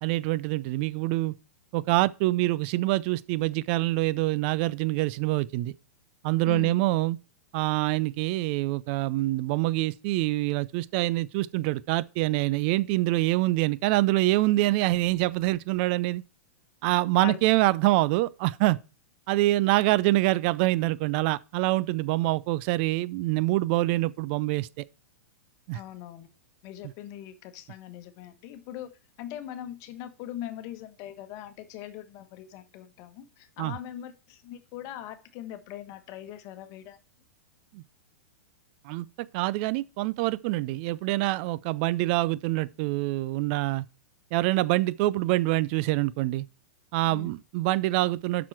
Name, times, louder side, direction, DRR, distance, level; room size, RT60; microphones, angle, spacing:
voice 1, 0.0-1.3 1.7-5.7 6.2-7.2 7.5-16.2 16.8-18.8 19.3-24.8 25.7-25.8 33.6-33.7 37.7-37.8 38.8-39.1 39.3-43.8 44.3-46.5 46.9-48.5, right 18 dB, 45° right, 0.4 m, -25 dB
voice 2, 6.5-6.8 17.2-17.4 25.7-26.3 26.6-28.9 29.2-37.0 47.1-47.3, left 12 dB, 45° left, 1.2 m, -41 dB
7.3 x 6.2 x 4.5 m
hypercardioid pair, 110°, 8 cm